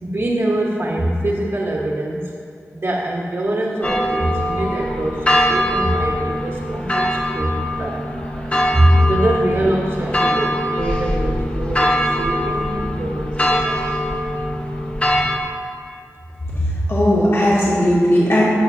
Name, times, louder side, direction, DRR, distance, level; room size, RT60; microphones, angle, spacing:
voice 1, 0.0-2.3 2.7-14.2, right 1 dB, 60° right, -5 dB, 1.5 m, -23 dB
sound 1, 3.8-15.4, equal, 20° left, 1.1 m, -22 dB
voice 2, 16.5-18.4, equal, 50° left, -8 dB, 2.6 m, -17 dB
19.0 x 6.6 x 2.8 m, 2.3 s
wide cardioid pair, 60°, 6 cm